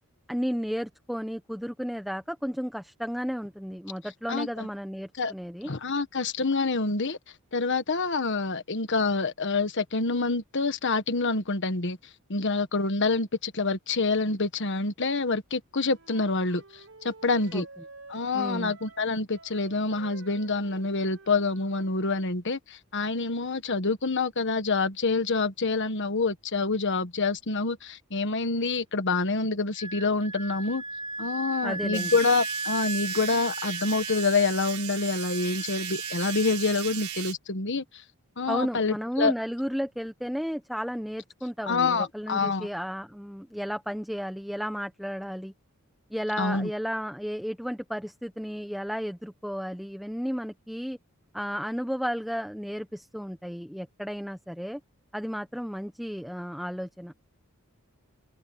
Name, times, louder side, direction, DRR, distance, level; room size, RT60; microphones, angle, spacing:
voice 1, 0.3-5.7 17.5-17.6 18.3-18.7 31.6-32.1 38.5-45.5 46.1-51.0 51.3-54.8 55.1-57.1, equal, ahead, 1.1 m, -33 dB
voice 2, 4.3-4.7 5.2-5.3 5.6-7.2 7.5-12.0 12.3-16.6 17.0-17.7 18.1-30.8 31.2-37.8 38.4-39.3 41.7-42.7 46.4-46.7, left 3 dB, 55° left, 1.4 m, -27 dB
Wind instrument woodwind instrument, 15.8-22.1, right 3 dB, 60° right, 5.6 m, -50 dB
Wind instrument woodwind instrument 2, 29.8-37.2, right 2 dB, 20° right, 0.6 m, -36 dB
sound 1, 31.9-37.3, right 12 dB, 80° right, 3.3 m, -37 dB
head